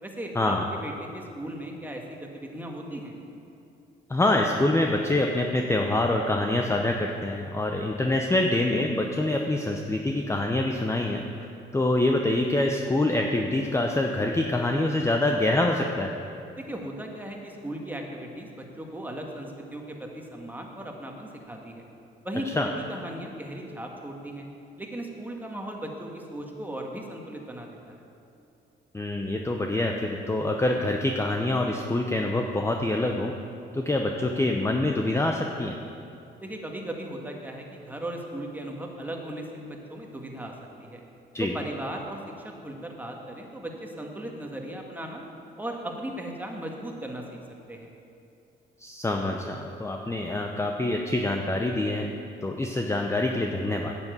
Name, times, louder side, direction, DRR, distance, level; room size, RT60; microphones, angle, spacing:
voice 1, 0.0-3.2 16.6-21.8 22.2-24.5 24.8-28.0 36.4-40.5 40.8-41.0 41.4-45.2 45.6-47.4 47.7-47.9, right 1 dB, 10° right, 1 dB, 1.7 m, -37 dB
voice 2, 4.1-16.1 22.6-22.7 28.9-33.3 33.7-35.7 41.3-41.5 48.8-52.1 52.4-54.0, left 2 dB, 15° left, 2 dB, 0.7 m, -25 dB
9.5 x 7.4 x 7.9 m, 2.7 s
cardioid pair, 90°, 20 cm